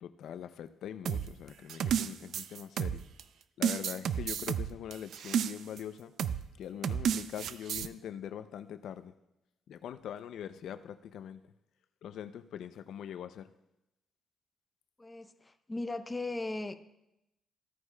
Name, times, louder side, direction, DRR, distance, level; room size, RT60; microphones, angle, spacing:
voice 1, 0.0-3.0 3.6-6.1 6.6-9.1 9.7-11.4 12.0-13.5, left 9 dB, 75° left, 11 dB, 0.4 m, -42 dB
sound 1, 1.1-3.2 3.6-5.8 6.2-6.4 6.8-7.9, right 8 dB, 70° right, 0.4 m, -32 dB
voice 2, 15.0-16.7, left 2 dB, 15° left, 9 dB, 0.6 m, -37 dB
15.0 x 9.3 x 2.2 m, 0.88 s
cardioid pair, 90°, 0 cm